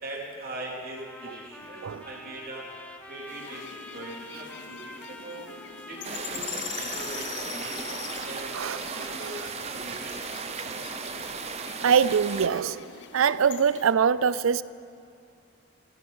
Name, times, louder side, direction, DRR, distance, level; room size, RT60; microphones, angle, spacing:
voice 1, 0.0-2.7 3.1-5.5 5.9-7.9 8.2-10.7, right 1 dB, 45° right, -3 dB, 3.3 m, -41 dB
sound 1, 0.9-9.3, left 1 dB, 5° left, 0.7 m, -47 dB
sound 2, 3.3-13.9, left 9 dB, 55° left, 0.6 m, -42 dB
sound 3, 6.0-12.5, right 5 dB, 30° right, 0.8 m, -36 dB
voice 2, 8.5-9.3 11.8-12.9 13.1-14.6, right 7 dB, 85° right, 17 dB, 0.4 m, -23 dB
17.5 x 13.5 x 5.4 m, 2.4 s
head